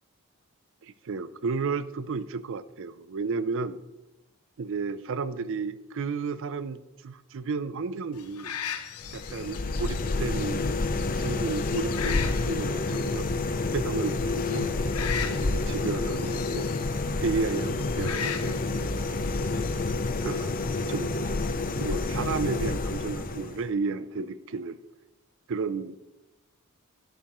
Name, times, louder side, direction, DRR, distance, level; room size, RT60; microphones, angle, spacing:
voice 1, 0.8-3.8 4.6-8.5 9.1-10.7 11.1-13.3 13.7-14.7 15.3-16.7 17.2-18.9 20.2-21.1 21.8-24.8 25.5-26.0, right 4 dB, 60° right, 15 dB, 0.5 m, -32 dB
sound 1, 8.1-20.4, left 8 dB, 80° left, 0.8 m, -40 dB
sound 2, 9.0-23.7, left 3 dB, 40° left, 0.6 m, -29 dB
12.5 x 10.0 x 3.1 m, 1.0 s
head